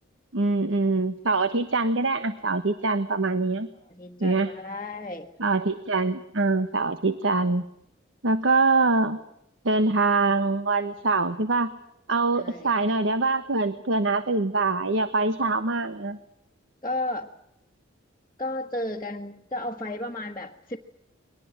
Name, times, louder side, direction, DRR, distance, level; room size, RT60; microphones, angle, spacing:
voice 1, 0.3-3.7 4.2-4.5 5.4-7.6 8.2-9.2 9.6-11.7 12.1-16.2, right 3 dB, 70° right, 12 dB, 1.3 m, -24 dB
voice 2, 3.8-5.3 12.3-12.7 16.8-17.3 18.4-20.8, left 1 dB, 20° left, -2 dB, 1.4 m, -33 dB
23.5 x 19.5 x 9.0 m, 0.79 s
head